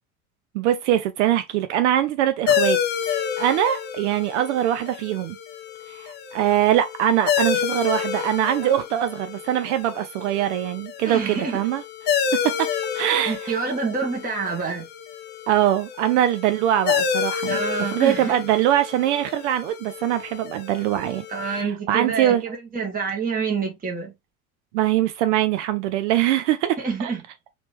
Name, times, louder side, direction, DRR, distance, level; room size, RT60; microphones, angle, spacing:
voice 1, 0.5-5.4 5.9-11.8 12.4-12.7 12.9-13.6 15.5-22.4 24.7-27.1, right 12 dB, 55° right, 0.6 m, -23 dB
sound 1, 2.5-21.6, left 7 dB, 25° left, 0.6 m, -29 dB
voice 2, 11.0-11.6 13.2-14.9 17.4-18.4 21.3-24.1 26.8-27.2, right 5 dB, 20° right, 1.3 m, -27 dB
4.2 x 2.9 x 3.3 m
figure-of-eight pair, 75°, 45 cm